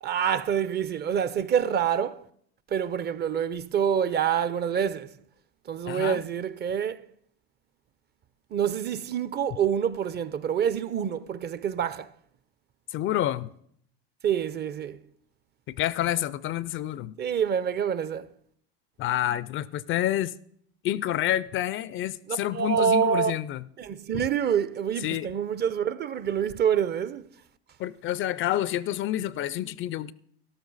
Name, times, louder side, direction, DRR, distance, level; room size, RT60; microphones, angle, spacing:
voice 1, 0.0-2.2 2.7-5.1 5.7-7.0 8.5-12.1 14.2-15.0 17.2-18.3 22.3-23.3 23.8-27.2, right 8 dB, 30° right, 0.5 m, -26 dB
voice 2, 5.9-6.2 12.9-13.5 15.7-17.1 19.0-20.3 20.8-23.6 24.1-24.2 25.0-25.3 27.8-30.1, left 13 dB, 40° left, 0.4 m, -28 dB
13.0 x 12.0 x 4.0 m
supercardioid pair, 95°, 33 cm